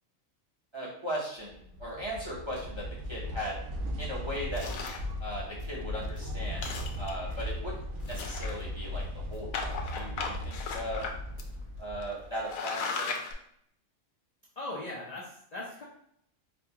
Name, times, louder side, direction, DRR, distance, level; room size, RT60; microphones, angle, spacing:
voice 1, 0.7-3.5 4.0-4.6 5.2-6.6 7.0-9.0 9.3-9.6 9.9-11.0 11.8-13.2, equal, 25° right, -6 dB, 0.7 m, -37 dB
sound 1, 1.5-12.5, left 1 dB, 90° right, 1.0 m, -37 dB
sound 2, 4.6-5.1 5.6-5.7 6.0-6.2 6.5-7.3 8.0-8.8 9.5-11.1 11.4-11.5 12.0-12.1 12.4-13.3, left 4 dB, 80° left, 1.0 m, -36 dB
voice 2, 14.6-15.8, left 2 dB, 50° left, -5 dB, 0.5 m, -39 dB
4.0 x 2.3 x 2.8 m, 0.70 s
omnidirectional pair, 1.4 m